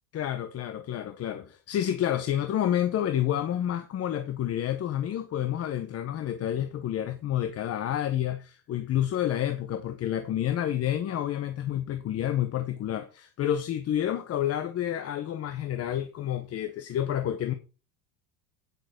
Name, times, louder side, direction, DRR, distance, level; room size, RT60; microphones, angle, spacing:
voice 1, 0.1-17.5, left 11 dB, 35° left, 0.8 m, -29 dB
9.4 x 6.1 x 4.9 m
supercardioid pair, 120°, 44 cm